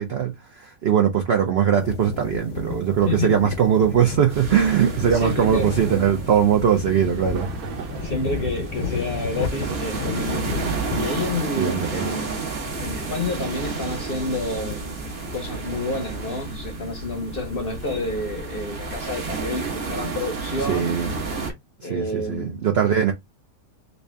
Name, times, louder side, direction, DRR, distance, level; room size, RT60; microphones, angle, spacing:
voice 1, 0.0-7.5 11.6-12.2 20.6-21.2 21.8-23.1, right 8 dB, 80° right, 0.5 m, -21 dB
sound 1, 1.8-18.9, left 5 dB, 80° left, 1.3 m, -35 dB
sound 2, 2.9-3.0 6.8-15.1, right 6 dB, 65° right, 1.2 m, -39 dB
voice 2, 3.1-3.4 5.1-5.7 8.0-12.4 12.8-20.9 21.8-22.6, left 2 dB, 45° left, 0.7 m, -29 dB
sound 3, 4.3-21.5, right 4 dB, 45° right, 0.9 m, -32 dB
3.3 x 2.7 x 3.2 m
omnidirectional pair, 1.8 m